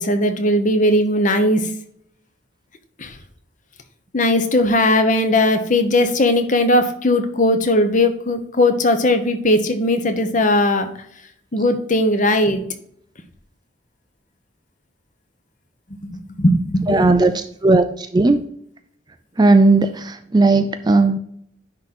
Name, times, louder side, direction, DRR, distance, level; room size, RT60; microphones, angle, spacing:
voice 1, 0.0-1.7 3.0-3.1 4.1-10.9 11.5-12.6 16.0-17.1, left 1 dB, 40° left, 8 dB, 0.9 m, -18 dB
voice 2, 16.9-18.4 19.4-21.2, right 3 dB, 20° right, 10 dB, 0.4 m, -16 dB
10.0 x 3.8 x 4.2 m, 0.69 s
head